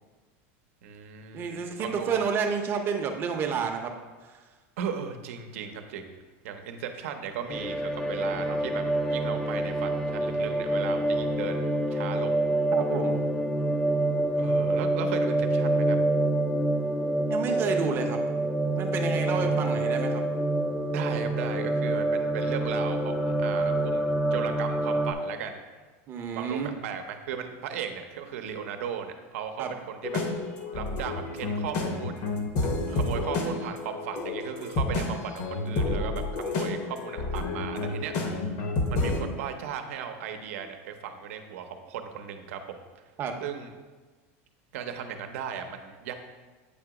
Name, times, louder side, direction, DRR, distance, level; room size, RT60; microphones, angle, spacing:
voice 1, 0.8-2.2 4.8-6.1 6.4-12.4 14.4-16.0 19.3-19.8 20.9-25.6 26.4-30.2 30.7-32.2 32.6-38.1 38.4-42.8 43.4-43.7 44.7-46.1, right 7 dB, 80° right, 6 dB, 0.7 m, -36 dB
voice 2, 1.3-3.9 12.7-13.2 17.3-18.2 18.8-20.2 26.1-26.7 29.6-29.7 35.0-35.1 43.2-43.4, right 5 dB, 30° right, 4 dB, 0.7 m, -30 dB
sound 1, 7.5-25.1, right 1 dB, 5° left, 0.4 m, -27 dB
sound 2, 30.0-39.2, left 2 dB, 50° left, 0.9 m, -30 dB
8.4 x 2.9 x 4.7 m, 1.4 s
supercardioid pair, 155°, 7 cm